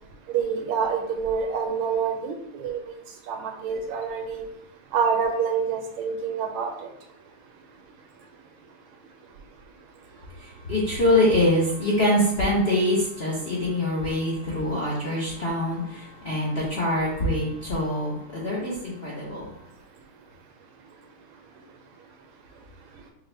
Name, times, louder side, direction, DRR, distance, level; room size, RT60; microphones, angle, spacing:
voice 1, 0.3-3.0 3.3-4.5 4.9-6.9, right 6 dB, 80° right, 3 dB, 1.5 m, -27 dB
voice 2, 10.4-19.5, left 1 dB, 65° left, -5 dB, 0.6 m, -24 dB
5.2 x 2.1 x 3.2 m, 0.75 s
omnidirectional pair, 2.4 m